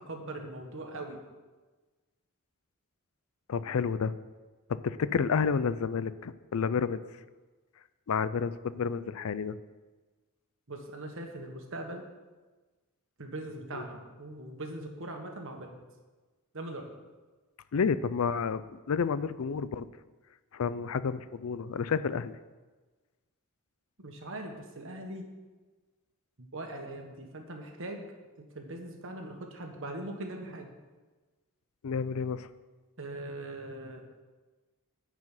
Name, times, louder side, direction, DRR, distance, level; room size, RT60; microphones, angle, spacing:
voice 1, 0.1-1.2 10.7-12.0 13.2-15.8 16.5-16.9 24.0-25.3 26.4-28.0 28.4-30.7 33.0-34.0, right 1 dB, 60° right, 3 dB, 1.4 m, -41 dB
voice 2, 3.5-4.1 4.7-7.0 8.1-9.6 13.7-13.8 17.7-18.6 18.9-19.9 20.5-22.4 31.8-32.5, left 6 dB, 70° left, 15 dB, 0.4 m, -30 dB
9.4 x 4.9 x 7.7 m, 1.3 s
head